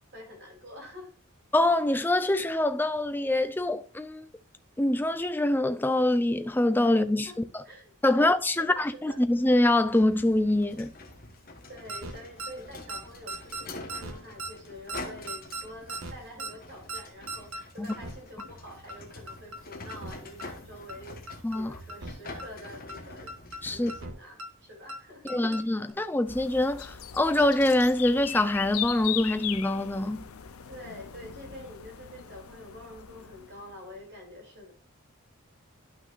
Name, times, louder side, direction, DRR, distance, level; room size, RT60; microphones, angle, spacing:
voice 1, 0.1-1.1 7.2-7.4 7.6-8.3 8.5-9.2 11.7-21.2 21.5-23.3 23.7-25.5 30.7-34.7, left 1 dB, 50° right, 3.0 m, -46 dB
voice 2, 1.5-4.3 4.8-7.6 8.0-10.9 17.8-17.9 21.4-21.7 23.6-23.9 25.3-30.3, left 1 dB, 10° left, 0.4 m, -25 dB
sound 1, 9.3-24.1, left 2 dB, 40° left, 1.2 m, -46 dB
sound 2, 11.9-12.1 12.4-12.5 12.9-13.0 13.3-13.6 13.9-14.1 14.4-14.5 14.9-15.0 15.3-15.6 15.9-16.1 16.4-16.5 16.9-17.0 17.3-17.6 17.9-18.1 18.4-18.5 18.9-19.0 19.3-19.6 19.9-20.1 20.4-20.5 20.9-21.0 21.3-21.6 21.9-22.1 22.4-22.5 22.9-23.0 23.3-23.6 23.9-24.1 24.4-24.5 24.9-25.0 25.3-25.6 25.9-26.0, right 2 dB, 75° right, 1.4 m, -37 dB
sound 3, 26.3-33.9, left 11 dB, 80° left, 0.6 m, -39 dB
11.5 x 5.9 x 2.5 m
head